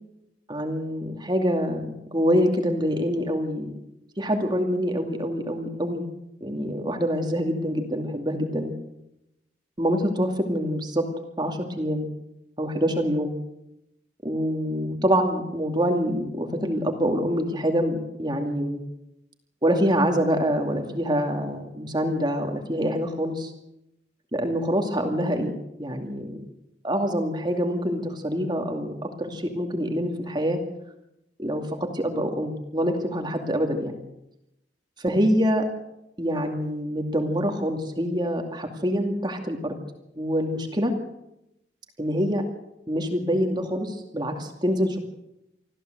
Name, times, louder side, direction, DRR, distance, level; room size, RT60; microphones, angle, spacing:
voice 1, 0.5-3.7 4.2-6.0 6.4-8.7 9.8-11.0 11.4-12.1 12.6-13.3 14.2-18.8 19.6-23.5 24.3-25.5 25.8-26.4 26.8-30.6 31.4-31.7 31.9-34.0 35.0-35.6 36.2-39.8 40.2-40.9 42.0-42.4 42.9-45.0, equal, 25° right, 4 dB, 2.5 m, -25 dB
25.5 x 14.5 x 7.9 m, 0.86 s
head